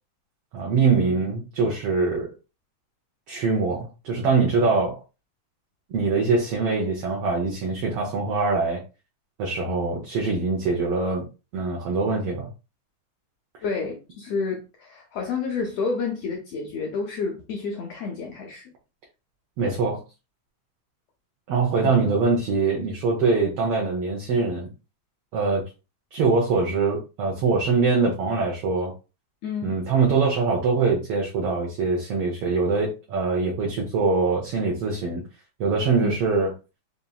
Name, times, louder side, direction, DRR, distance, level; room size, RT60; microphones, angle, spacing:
voice 1, 0.5-2.3 3.3-5.0 5.9-8.8 9.4-11.3 11.5-12.5 19.6-20.0 21.5-24.7 25.3-25.7 26.1-28.9 29.6-35.2 35.6-36.5, right 4 dB, 70° right, 1.4 m, -23 dB
voice 2, 13.6-18.7 21.8-21.9 29.4-29.8 36.0-36.1, left 4 dB, 75° left, 1.5 m, -30 dB
5.2 x 2.9 x 2.3 m
omnidirectional pair, 3.5 m